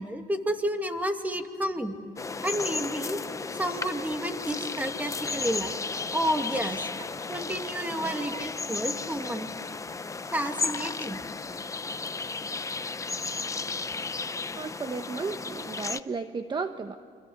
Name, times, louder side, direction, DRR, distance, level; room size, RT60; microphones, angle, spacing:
voice 1, 0.0-2.0 2.4-3.2 3.6-6.9 7.3-9.5 10.3-11.2, equal, 10° right, 5 dB, 2.5 m, -31 dB
sound 1, 2.2-16.0, left 4 dB, 20° left, 0.8 m, -34 dB
voice 2, 8.1-8.4 14.5-17.0, right 4 dB, 25° right, 8 dB, 1.1 m, -34 dB
29.0 x 25.0 x 8.1 m, 2.3 s
cardioid pair, 110°, 17 cm